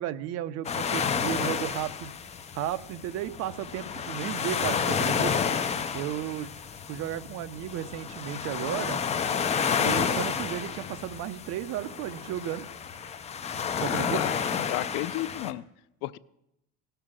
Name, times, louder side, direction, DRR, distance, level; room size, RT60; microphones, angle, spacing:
voice 1, 0.0-2.1 2.5-5.4 5.9-6.6 6.9-9.0 9.8-12.7 13.8-14.2, right 12 dB, 50° right, 12 dB, 0.7 m, -34 dB
sound 1, 0.6-15.5, left 6 dB, 20° left, 0.5 m, -30 dB
voice 2, 13.7-15.6 16.0-16.2, left 16 dB, 65° left, 18 dB, 0.5 m, -33 dB
18.0 x 6.8 x 7.4 m, 0.85 s
cardioid pair, 160°, 33 cm